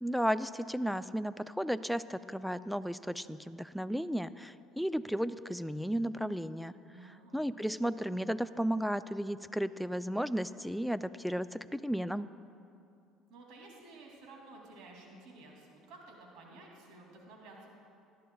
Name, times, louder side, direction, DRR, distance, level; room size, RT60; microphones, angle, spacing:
voice 1, 0.0-6.7 7.3-12.3, equal, ahead, 14 dB, 0.4 m, -34 dB
voice 2, 6.9-7.5 13.3-17.7, right 2 dB, 70° right, -1 dB, 2.7 m, -53 dB
19.0 x 11.5 x 2.3 m, 2.6 s
supercardioid pair, 75°, 0 cm